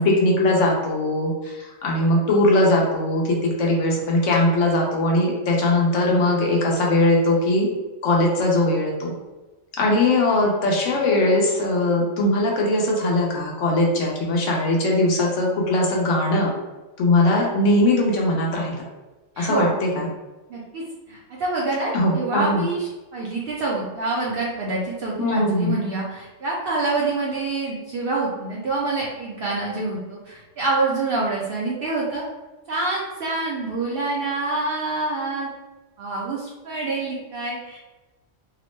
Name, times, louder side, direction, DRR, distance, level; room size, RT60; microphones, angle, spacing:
voice 1, 0.0-7.7 8.0-9.1 9.8-16.5 17.0-18.8 19.4-20.1 21.9-22.7 25.2-25.8, left 1 dB, 70° left, -1 dB, 1.0 m, -20 dB
voice 2, 19.4-19.7 20.5-32.2 32.7-35.5 36.0-37.8, right 3 dB, 60° right, -4 dB, 0.6 m, -26 dB
2.9 x 2.0 x 3.1 m, 1.1 s
omnidirectional pair, 1.4 m